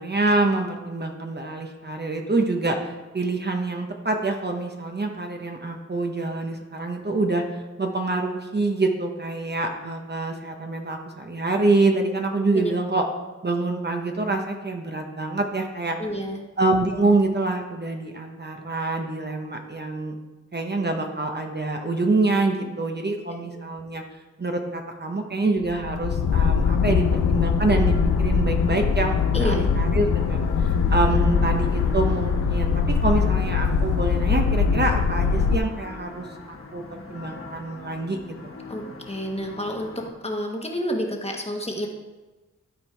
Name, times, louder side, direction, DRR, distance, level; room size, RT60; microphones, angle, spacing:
voice 1, 0.0-13.0 13.4-16.0 16.6-20.1 20.5-24.0 24.4-38.2, right 2 dB, 35° right, 3 dB, 0.8 m, -26 dB
voice 2, 16.0-16.5 23.4-23.6 29.3-29.7 38.7-41.9, equal, 20° left, 2 dB, 1.2 m, -29 dB
sound 1, 25.6-35.6, left 6 dB, 85° left, 0.5 m, -22 dB
sound 2, 26.6-40.1, left 3 dB, 45° left, 1.2 m, -40 dB
12.0 x 4.5 x 4.6 m, 1.2 s
wide cardioid pair, 90°, 29 cm